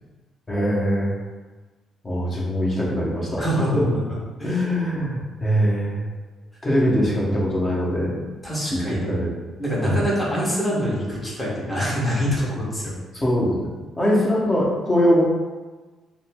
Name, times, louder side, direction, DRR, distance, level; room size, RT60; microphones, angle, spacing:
voice 1, 0.5-1.2 2.0-3.4 3.7-4.0 4.4-6.1 6.6-8.3 8.7-9.3 9.8-10.0 13.1-13.7 14.0-15.2, equal, 30° left, -4 dB, 1.3 m, -22 dB
voice 2, 3.4-3.8 4.4-4.6 8.4-9.1 9.6-12.9, equal, 10° left, -7 dB, 1.4 m, -25 dB
5.4 x 2.1 x 3.7 m, 1.3 s
cardioid pair, 90°, 0 cm